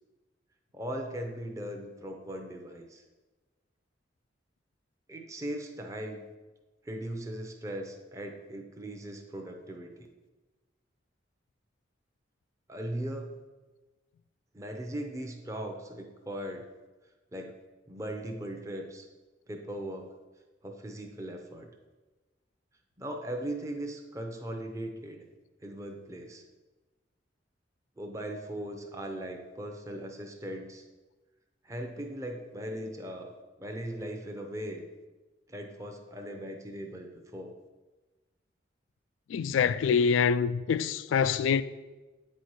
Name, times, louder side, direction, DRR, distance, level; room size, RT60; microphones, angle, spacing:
voice 1, 0.7-3.0 5.1-6.2 6.8-9.9 12.7-13.4 14.5-16.7 17.3-17.6 17.9-19.1 19.5-20.1 20.6-21.7 23.0-25.2 25.6-26.4 28.0-30.8 31.6-34.8 35.5-37.5, right 1 dB, 15° right, 0.6 m, -39 dB
voice 2, 39.3-41.6, left 6 dB, 85° left, 0.3 m, -25 dB
8.7 x 4.3 x 4.7 m
head